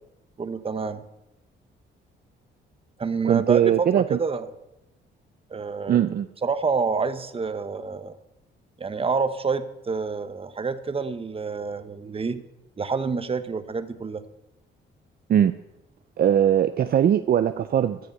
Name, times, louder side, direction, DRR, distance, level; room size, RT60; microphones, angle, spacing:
voice 1, 0.4-1.0 3.0-4.5 5.5-6.0 6.4-8.2 8.8-12.4 12.8-14.2, right 4 dB, 30° right, 11 dB, 1.1 m, -28 dB
voice 2, 3.2-4.2 5.9-6.3 15.3-15.5 16.2-18.0, right 10 dB, 50° right, 11 dB, 0.5 m, -20 dB
14.5 x 6.7 x 8.3 m, 0.91 s
cardioid pair, 90°, 20 cm